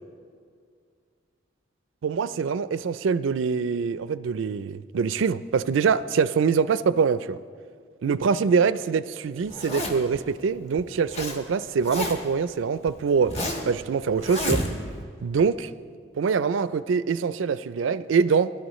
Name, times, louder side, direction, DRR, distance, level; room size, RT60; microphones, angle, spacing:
voice 1, 2.0-7.4 8.0-14.6 15.2-15.7 16.2-18.5, right 5 dB, 80° right, 16 dB, 0.4 m, -24 dB
Zipper (clothing), 9.5-10.2 10.8-11.4 11.6-12.4 12.9-13.7 14.2-15.0, left 1 dB, 35° left, 1.2 m, -30 dB
19.0 x 11.5 x 3.1 m, 2.2 s
head